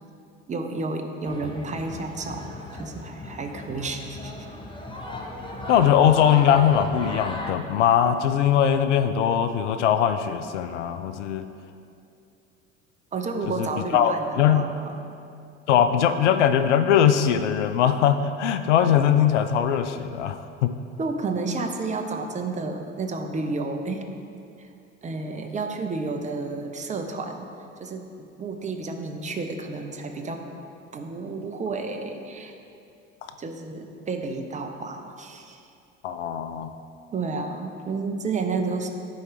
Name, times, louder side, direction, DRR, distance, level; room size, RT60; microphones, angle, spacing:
voice 1, 0.5-4.3 13.1-15.1 21.0-24.0 24.6-24.7 25.0-27.5 27.8-28.1 28.4-30.4 30.9-32.5 33.4-35.6 37.1-38.9, right 3 dB, 20° right, 4 dB, 0.7 m, -31 dB
sound 1, 1.2-7.5, left 1 dB, 15° left, 0.9 m, -37 dB
voice 2, 5.7-11.5 13.6-14.7 15.7-20.7 36.0-36.7, left 9 dB, 70° left, 10 dB, 0.5 m, -21 dB
10.5 x 4.7 x 4.6 m, 2.5 s
figure-of-eight pair, 65°, 38 cm